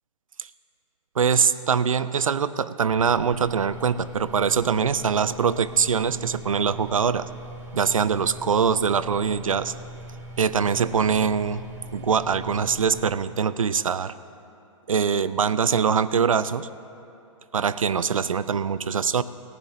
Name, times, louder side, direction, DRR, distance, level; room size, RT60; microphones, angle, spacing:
voice 1, 1.2-7.3 7.7-9.7 10.4-11.6 11.9-14.1 14.9-16.7 17.5-19.2, right 6 dB, 85° right, 16 dB, 0.5 m, -23 dB
sound 1, 2.9-13.0, right 1 dB, 60° right, 2.1 m, -41 dB
19.5 x 15.0 x 2.8 m, 2.8 s
figure-of-eight pair, 115°, 17 cm